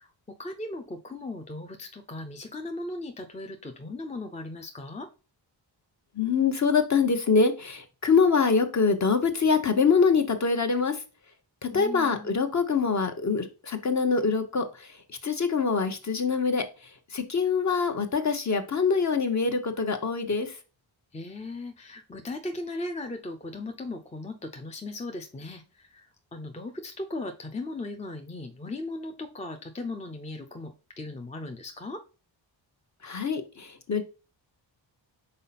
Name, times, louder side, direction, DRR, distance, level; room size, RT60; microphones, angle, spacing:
voice 1, 0.0-5.1 11.7-12.3 21.1-32.0, left 2 dB, 15° left, 0.5 m, -37 dB
voice 2, 6.2-11.0 11.6-14.9 15.2-16.6 17.1-20.5 33.0-34.0, left 5 dB, 35° left, 0.9 m, -24 dB
5.4 x 4.2 x 4.1 m
wide cardioid pair, 135°, 46 cm